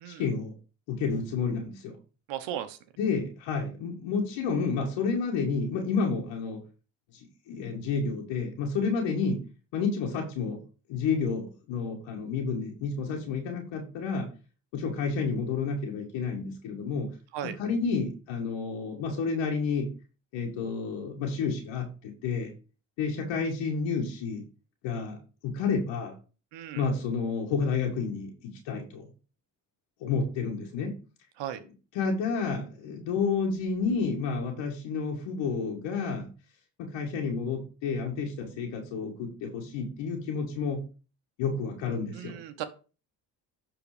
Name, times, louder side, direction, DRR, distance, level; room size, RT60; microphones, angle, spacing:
voice 1, 0.1-0.5 0.9-1.9 3.0-6.6 7.5-9.4 9.7-10.6 10.9-14.3 14.7-17.1 17.4-19.9 20.3-22.5 23.0-24.4 24.8-25.2 25.4-26.1 26.8-29.1 30.0-30.9 31.9-36.3 36.8-40.9 41.4-42.3, left 5 dB, 80° left, 0 dB, 1.9 m, -30 dB
voice 2, 2.3-2.8 17.3-17.5 26.5-26.8 31.4-31.6 42.1-42.6, right 11 dB, 75° right, 11 dB, 1.3 m, -36 dB
11.5 x 4.1 x 5.0 m, 0.35 s
supercardioid pair, 65°, 44 cm